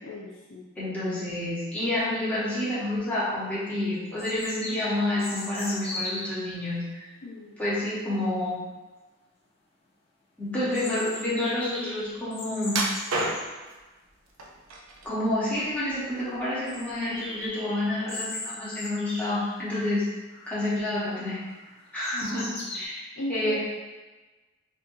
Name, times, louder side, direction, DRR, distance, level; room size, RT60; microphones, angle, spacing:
voice 1, 0.0-0.7 7.2-7.6 22.1-22.8 23.2-23.6, left 1 dB, 70° left, -3 dB, 0.7 m, -38 dB
voice 2, 0.8-6.8 7.6-8.6 10.4-12.8 15.0-20.0 20.5-21.4 21.9-23.0 23.3-23.6, left 1 dB, 5° left, -11 dB, 1.1 m, -29 dB
sound 1, 3.2-3.3 4.2-6.4 10.7-13.5 15.1-15.2 15.4-15.5 15.9-16.0 16.7-19.9 20.3-20.8 21.3-22.8, left 2 dB, 30° left, 0.6 m, -38 dB
sound 2, 12.7-13.7 14.4-15.1 15.5-16.4 16.7-16.9 17.5-17.6, right 2 dB, 90° right, 0.5 m, -30 dB
4.3 x 2.6 x 2.6 m, 1.2 s
head